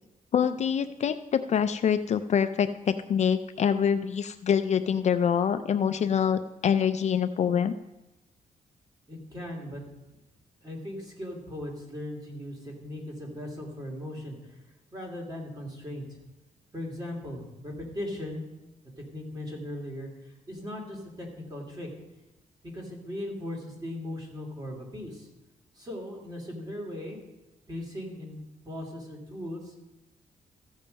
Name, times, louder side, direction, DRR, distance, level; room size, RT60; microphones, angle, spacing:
voice 1, 0.3-7.7, left 8 dB, 50° left, 9 dB, 0.4 m, -25 dB
voice 2, 9.1-9.8 10.6-14.6 14.9-16.2 16.7-18.4 19.1-21.9 22.6-25.3 25.7-27.2 27.7-29.7, left 1 dB, 25° right, 0 dB, 2.9 m, -38 dB
14.0 x 7.3 x 5.3 m, 1.0 s
cardioid pair, 140°, 15 cm